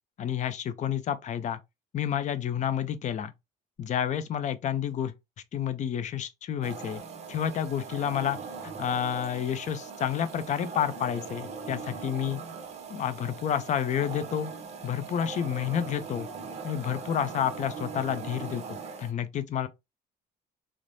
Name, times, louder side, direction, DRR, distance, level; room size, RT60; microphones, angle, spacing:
voice 1, 0.2-1.6 1.9-3.3 3.8-5.1 5.5-7.0 7.3-8.4 8.6-12.4 12.9-14.5 14.8-16.3 16.6-18.6 19.0-19.7, left 9 dB, 45° left, 0.5 m, -30 dB
sound 1, 6.6-19.1, right 5 dB, 40° right, 0.6 m, -40 dB
3.2 x 2.0 x 2.6 m
cardioid pair, 110°, 17 cm